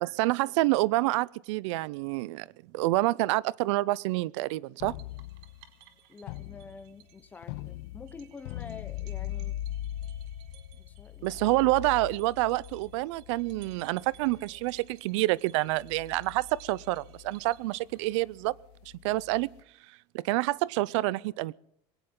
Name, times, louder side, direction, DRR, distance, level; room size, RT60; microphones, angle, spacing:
voice 1, 0.0-2.5 2.7-5.0 11.2-18.5 19.0-19.5 20.1-21.5, right 19 dB, 85° right, 0.6 m, -27 dB
sound 1, 4.8-5.6 6.2-6.9 7.4-14.9 15.7-19.6, left 13 dB, 70° left, 0.6 m, -41 dB
sound 2, 5.0-18.4, right 12 dB, 65° right, 2.4 m, -59 dB
voice 2, 6.1-9.6 10.8-11.4, left 4 dB, 10° left, 0.7 m, -47 dB
21.5 x 17.5 x 3.9 m
cardioid pair, 175°, 15 cm